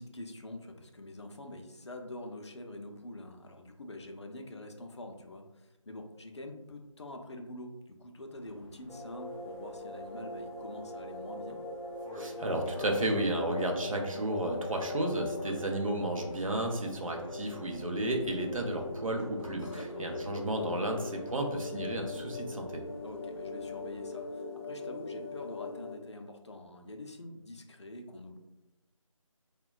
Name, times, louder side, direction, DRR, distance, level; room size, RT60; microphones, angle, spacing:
voice 1, 0.0-11.6 16.7-17.0 19.7-20.1 23.0-28.4, left 1 dB, 55° left, 3 dB, 0.4 m, -45 dB
sound 1, 8.3-24.2, equal, 20° right, 0.6 m, -53 dB
sound 2, 8.9-25.9, left 3 dB, 20° left, 0.7 m, -41 dB
voice 2, 12.2-22.8, right 1 dB, 75° right, 3 dB, 0.6 m, -33 dB
3.4 x 2.1 x 2.3 m, 1.0 s
figure-of-eight pair, 175°, 17 cm